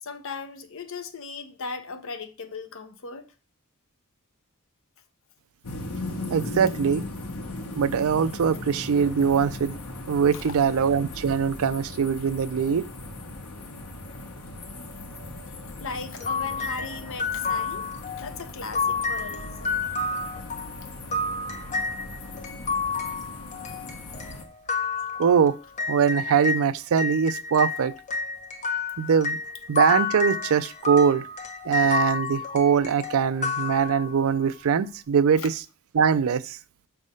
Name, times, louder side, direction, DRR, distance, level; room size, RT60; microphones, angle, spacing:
voice 1, 0.0-3.3 6.0-6.3 10.3-10.6 15.8-17.9 18.2-19.9 35.4-35.5, left 4 dB, 65° left, 0.8 m, -38 dB
sound 1, 5.6-24.4, left 2 dB, 85° left, 1.1 m, -38 dB
voice 2, 6.3-7.0 7.7-9.8 10.1-12.8 25.2-25.6 25.9-27.9 29.0-29.4 29.7-31.3 31.6-35.5 35.9-36.6, right 7 dB, 70° right, 0.4 m, -22 dB
sound 2, 16.2-26.6 27.0-34.3, left 4 dB, 35° left, 0.8 m, -30 dB
6.2 x 3.4 x 5.4 m
head